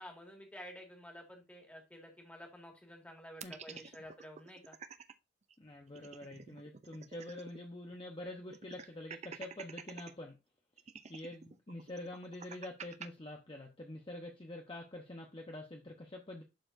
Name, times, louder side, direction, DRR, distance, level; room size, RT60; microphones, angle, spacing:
voice 1, 0.0-4.8, equal, 10° left, 1.9 m, -51 dB
voice 2, 3.4-3.8 5.6-10.4 11.1-16.4, left 1 dB, 30° left, 0.9 m, -46 dB
sound 1, 3.4-5.1 5.5-5.6 5.9-7.7 7.9-8.0 8.5-10.1 10.8-13.1, right 6 dB, 40° right, 0.4 m, -49 dB
11.5 x 4.2 x 2.6 m
head